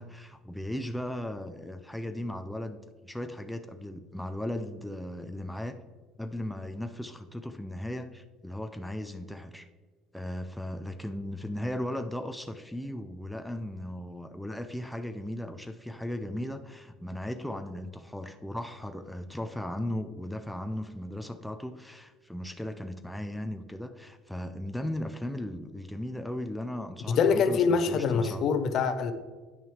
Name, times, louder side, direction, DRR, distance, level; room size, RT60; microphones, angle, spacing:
voice 1, 0.0-2.8 3.0-5.8 6.2-9.7 10.1-28.4, left 1 dB, 5° left, 7 dB, 0.4 m, -37 dB
voice 2, 27.1-29.1, left 5 dB, 55° left, 9 dB, 0.7 m, -25 dB
8.9 x 6.1 x 3.2 m, 1.4 s
supercardioid pair, 110°, 0 cm